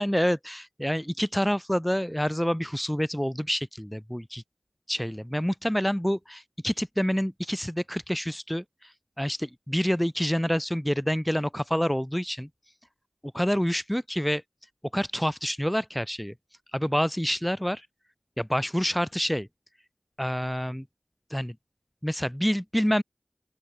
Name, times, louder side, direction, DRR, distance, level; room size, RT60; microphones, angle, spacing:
voice 1, 0.0-4.4 4.9-8.6 9.2-12.5 13.3-14.4 14.9-16.3 16.7-17.8 18.4-19.5 20.2-20.8 21.3-21.5 22.0-23.0, equal, 5° left, 3.2 m, -27 dB
open air
wide cardioid pair, 40°, 0 cm